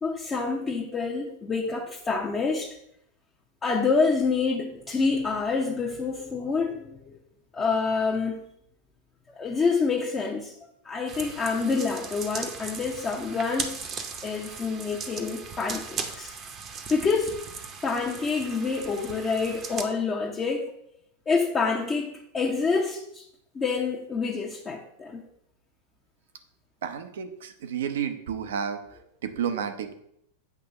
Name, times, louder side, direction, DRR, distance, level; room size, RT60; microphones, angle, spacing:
voice 1, 0.0-2.8 3.6-7.2 7.5-8.4 9.4-10.5 10.8-13.8 14.2-16.3 16.9-17.3 17.8-20.7 21.3-23.2 23.5-25.2, left 4 dB, 20° left, -3 dB, 0.7 m, -27 dB
sound 1, 11.1-19.9, right 5 dB, 30° right, 0.8 m, -38 dB
voice 2, 26.8-28.8 29.2-29.9, right 8 dB, 75° right, 8 dB, 0.7 m, -31 dB
8.2 x 2.9 x 5.3 m, 0.76 s
hypercardioid pair, 120°, 0 cm